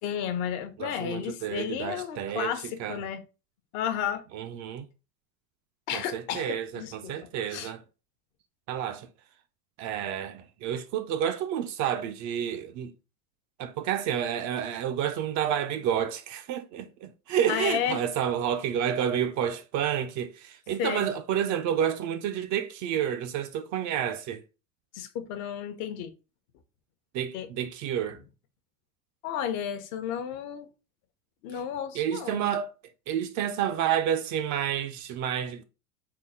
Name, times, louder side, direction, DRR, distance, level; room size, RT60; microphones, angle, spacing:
voice 1, 0.0-3.2 3.7-4.2 5.9-7.1 7.5-7.7 17.5-18.0 20.8-21.1 24.9-26.1 27.3-27.5 29.2-30.7 31.4-32.4, left 9 dB, 65° left, 0.8 m, -32 dB
voice 2, 0.8-3.1 4.3-4.9 5.9-7.8 8.7-9.1 9.8-12.9 13.6-24.4 27.1-28.2 31.9-32.7 33.1-35.6, right 9 dB, 40° right, 0.4 m, -30 dB
3.8 x 2.1 x 4.1 m
supercardioid pair, 120°, 47 cm